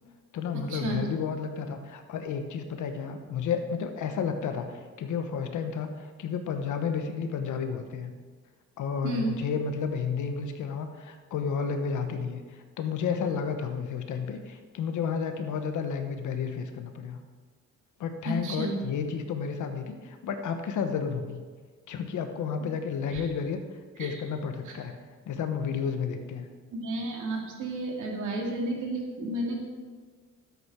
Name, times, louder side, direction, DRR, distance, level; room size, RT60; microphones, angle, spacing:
voice 1, 0.3-8.1 8.8-17.2 18.0-21.4 21.9-23.6 24.0-25.0 25.3-26.5, left 6 dB, 85° left, 6 dB, 1.3 m, -32 dB
voice 2, 9.0-9.3 18.3-18.7 22.6-22.7 23.1-23.3 24.0-24.1 24.7-24.8 26.7-29.6, right 2 dB, 80° right, 0 dB, 2.4 m, -32 dB
12.5 x 8.5 x 4.7 m, 1.5 s
cardioid pair, 80°, 30 cm